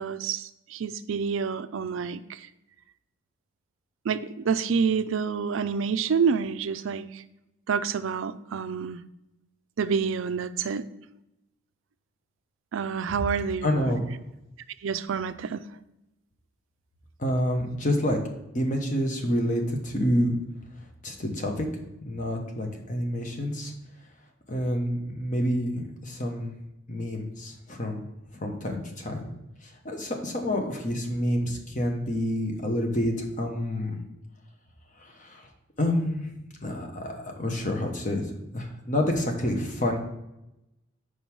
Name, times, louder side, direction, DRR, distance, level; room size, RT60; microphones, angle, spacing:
voice 1, 0.0-2.4 4.1-7.2 7.7-9.0 9.8-10.8 12.7-13.9 14.8-15.6, right 6 dB, 70° right, 13 dB, 0.4 m, -28 dB
voice 2, 13.6-14.0 17.2-18.2 18.5-20.3 21.0-21.7 22.0-23.7 24.5-26.5 26.9-28.0 28.3-29.3 29.6-34.0 35.0-35.5 35.8-36.3 36.6-40.0, left 1 dB, 40° left, 2 dB, 1.1 m, -28 dB
5.3 x 4.8 x 6.0 m, 0.90 s
head